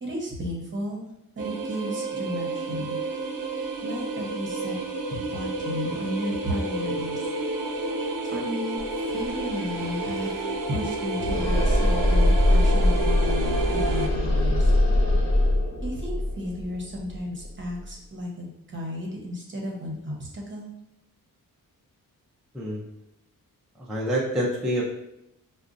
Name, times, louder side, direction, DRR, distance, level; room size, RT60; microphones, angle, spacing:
voice 1, 0.0-1.1 1.4-3.0 3.8-4.8 5.1-7.2 8.3-10.3 10.7-14.7 15.8-20.7, equal, 35° right, -1 dB, 0.8 m, -33 dB
sound 1, 1.4-14.1, right 2 dB, 65° right, 0.5 m, -30 dB
sound 2, 8.8-8.9 9.1-17.9, left 1 dB, 50° left, 1.0 m, -23 dB
voice 2, 22.5-22.9 23.8-24.9, equal, ahead, -4 dB, 0.4 m, -27 dB
5.0 x 2.2 x 2.5 m, 0.84 s
wide cardioid pair, 125°, 34 cm